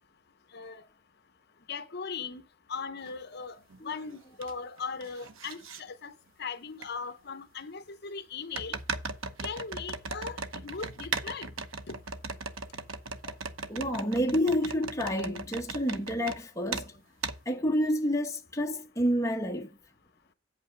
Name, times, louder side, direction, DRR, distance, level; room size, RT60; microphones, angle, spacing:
voice 1, 0.5-0.8 1.7-2.4 2.7-3.6 3.8-6.1 6.4-8.8 9.4-11.5 11.9-12.0, left 5 dB, 55° left, 0.8 m, -38 dB
sound 1, 3.1-3.2 3.7-4.5 4.8-5.8 6.8-6.9 8.5-16.4 16.7-16.9 17.2-17.4, right 4 dB, 85° right, 0.9 m, -38 dB
voice 2, 13.7-16.9 17.5-19.7, equal, 15° left, 1.0 m, -29 dB
8.6 x 5.5 x 6.1 m
head